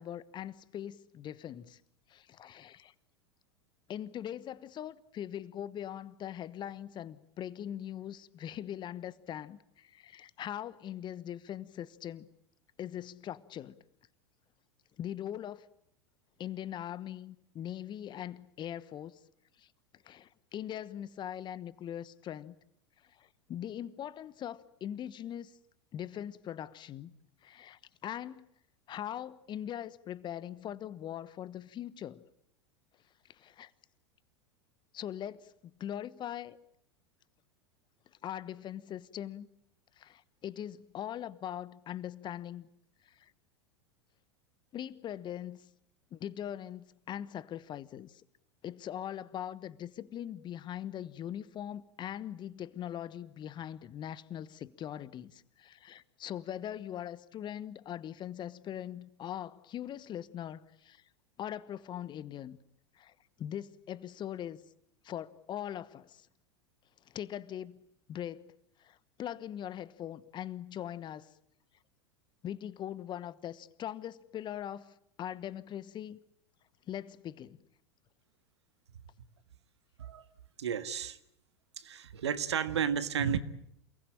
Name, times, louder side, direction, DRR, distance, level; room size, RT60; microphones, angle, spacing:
voice 1, 0.0-1.8 2.1-2.9 3.9-12.3 12.8-13.8 15.0-15.7 16.4-19.2 19.6-19.7 20.0-22.5 23.2-25.5 25.9-27.1 27.4-28.5 28.9-32.2 33.3-33.7 34.9-35.5 35.8-36.6 38.2-39.5 40.0-42.7 43.0-43.3 44.7-45.6 46.1-48.2 48.6-61.0 61.4-62.6 63.0-63.1 63.4-64.6 65.0-66.3 67.1-67.8 68.1-68.5 68.8-71.3 72.4-76.2 76.9-77.6, left 10 dB, 30° left, 1.2 m, -41 dB
voice 2, 80.6-81.2 81.8-83.4, right 7 dB, 75° right, 1.7 m, -32 dB
28.5 x 20.0 x 8.8 m
figure-of-eight pair, 90°, 14 cm